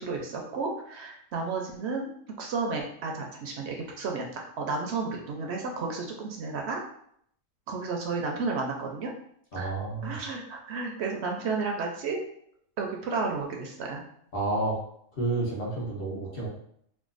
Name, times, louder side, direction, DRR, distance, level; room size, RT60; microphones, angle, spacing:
voice 1, 0.0-2.1 2.4-6.8 7.7-9.1 9.5-9.7 10.0-12.2 12.8-14.0, right 4 dB, 65° right, 1 dB, 0.7 m, -32 dB
voice 2, 9.5-10.2 14.3-14.8 15.1-16.5, right 2 dB, 45° left, -4 dB, 1.1 m, -30 dB
4.7 x 2.2 x 2.4 m, 0.68 s
omnidirectional pair, 1.5 m